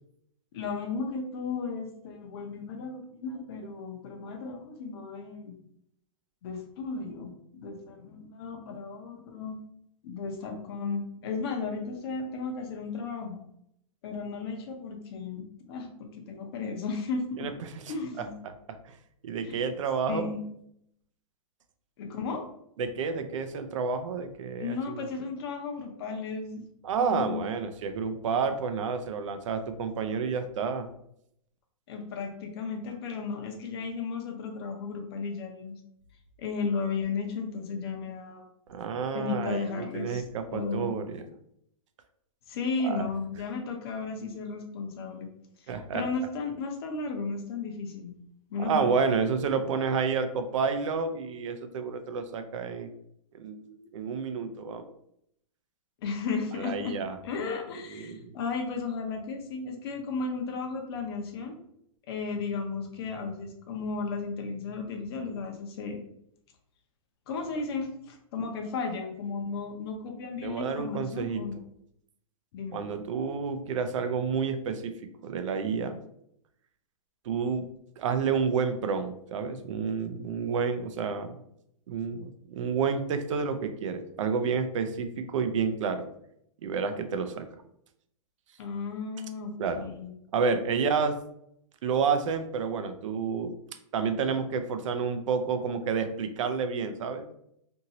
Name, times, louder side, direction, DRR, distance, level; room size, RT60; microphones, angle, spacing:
voice 1, 0.5-5.6 6.4-9.6 10.0-13.4 14.0-17.5 17.9-18.4 19.4-19.6 20.1-20.5 22.0-22.4 24.6-26.7 27.0-27.5 31.9-35.7 36.4-38.4 39.1-40.2 40.5-40.9 42.5-45.3 45.6-48.2 48.5-48.9 56.0-57.0 57.2-61.6 62.1-66.0 67.3-71.5 72.5-72.8 88.6-90.1, left 4 dB, 45° left, 3 dB, 0.6 m, -34 dB
voice 2, 17.4-17.7 18.4-18.5 18.9-19.0 19.2-20.3 22.8-25.1 26.8-30.9 38.7-41.3 42.8-43.0 45.7-46.0 48.6-52.9 53.3-54.9 56.6-57.1 57.9-58.3 70.4-71.6 72.7-76.0 77.3-77.7 78.0-81.4 81.9-86.0 86.6-87.5 89.6-89.9 90.3-91.2 91.8-93.5 93.9-97.3, right 5 dB, 60° right, 8 dB, 0.4 m, -30 dB
2.9 x 2.7 x 2.7 m, 0.73 s
hypercardioid pair, 160°, 18 cm